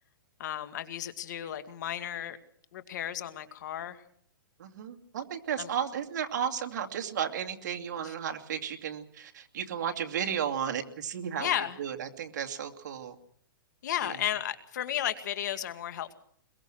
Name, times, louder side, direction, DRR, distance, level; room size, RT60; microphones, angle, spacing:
voice 1, 0.4-2.4 2.7-4.0 5.6-5.7 8.0-8.1 11.4-11.8 13.8-16.1, left 11 dB, 55° left, 10 dB, 2.0 m, -33 dB
voice 2, 4.6-13.1 14.0-14.2, right 8 dB, 55° right, 5 dB, 2.5 m, -34 dB
22.5 x 22.0 x 6.3 m, 0.65 s
hypercardioid pair, 160°, 11 cm